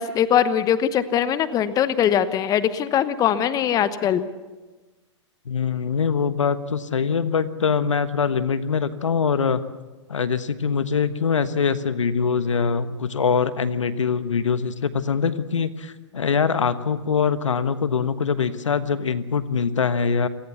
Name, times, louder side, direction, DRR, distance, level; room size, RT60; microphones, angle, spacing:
voice 1, 0.0-4.3, left 9 dB, 25° left, 13 dB, 1.1 m, -21 dB
voice 2, 5.4-9.6 10.1-20.3, left 6 dB, 80° left, 13 dB, 1.3 m, -23 dB
28.0 x 17.5 x 7.1 m, 1.2 s
hypercardioid pair, 120°, 16 cm